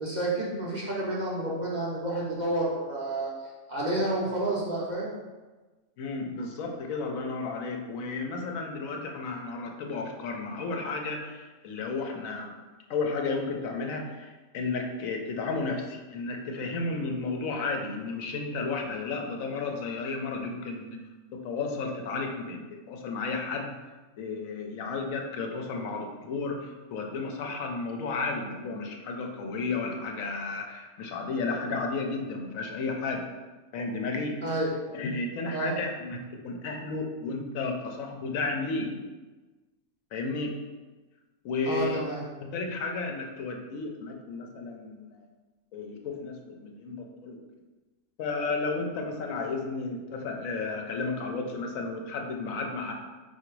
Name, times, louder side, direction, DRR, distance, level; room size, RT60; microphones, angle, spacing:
voice 1, 0.0-3.3 3.7-5.1 34.4-34.7 35.5-35.7 41.7-42.2, right 1 dB, 40° right, -5 dB, 0.7 m, -30 dB
voice 2, 6.0-12.5 12.9-21.0 21.3-22.6 22.9-23.7 24.2-33.2 33.7-34.4 34.9-38.9 40.1-40.5 41.4-42.0 42.5-45.3 45.7-47.4 48.2-52.9, left 3 dB, 80° left, 2 dB, 1.0 m, -33 dB
3.8 x 2.6 x 4.5 m, 1.2 s
omnidirectional pair, 1.4 m